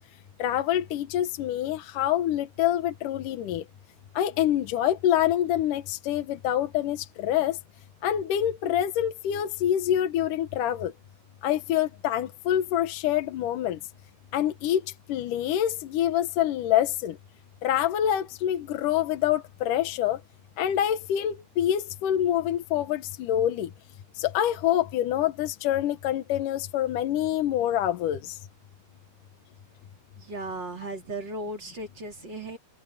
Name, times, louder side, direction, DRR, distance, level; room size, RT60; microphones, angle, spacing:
voice 1, 0.4-3.6 4.2-7.6 8.0-10.9 11.4-13.8 14.3-14.8 15.1-17.2 17.6-20.2 20.6-23.7 24.2-28.4, left 11 dB, 75° left, 2.6 m, -26 dB
voice 2, 30.2-32.6, right 2 dB, 30° right, 4.6 m, -36 dB
omnidirectional pair, 4.0 m